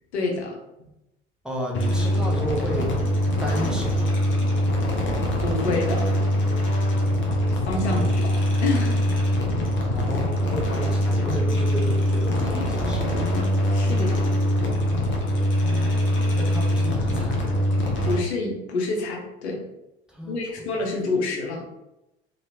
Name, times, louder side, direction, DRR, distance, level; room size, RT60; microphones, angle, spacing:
voice 1, 0.1-0.6 5.4-6.1 7.5-9.0 13.7-14.2 18.0-19.7 20.2-21.6, left 3 dB, 75° left, 0 dB, 0.7 m, -28 dB
voice 2, 1.4-3.0 3.4-4.2 7.9-8.2 9.9-13.0 16.4-17.5 20.1-20.7 21.0-21.1, equal, ahead, -2 dB, 0.7 m, -32 dB
sound 1, 1.7-18.2, left 1 dB, 35° left, 0.8 m, -23 dB
3.0 x 2.8 x 2.8 m, 0.91 s
figure-of-eight pair, 65°, 33 cm